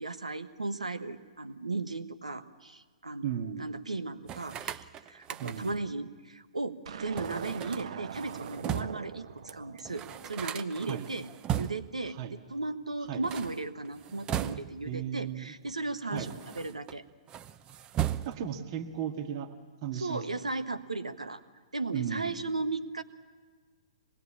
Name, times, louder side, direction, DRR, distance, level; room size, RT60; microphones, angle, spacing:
voice 1, 0.0-11.3 11.5-17.0 19.9-21.4 21.7-23.0, right 3 dB, 90° right, 11 dB, 1.3 m, -36 dB
voice 2, 3.2-3.7 5.4-5.8 10.8-11.1 12.1-12.4 13.1-13.2 14.9-15.5 16.1-16.4 18.3-19.5 19.8-20.2 21.9-22.4, right 9 dB, 45° right, 4 dB, 1.9 m, -36 dB
sound 1, 4.3-5.9 7.2-9.1 9.5-9.6 9.8-12.0 13.1-14.9 15.7-17.0 17.3-18.6, right 11 dB, 25° right, 0.7 m, -37 dB
sound 2, 6.9-11.2, right 7 dB, 65° right, 0.9 m, -43 dB
25.0 x 20.0 x 8.8 m, 1.5 s
figure-of-eight pair, 120°, 3 cm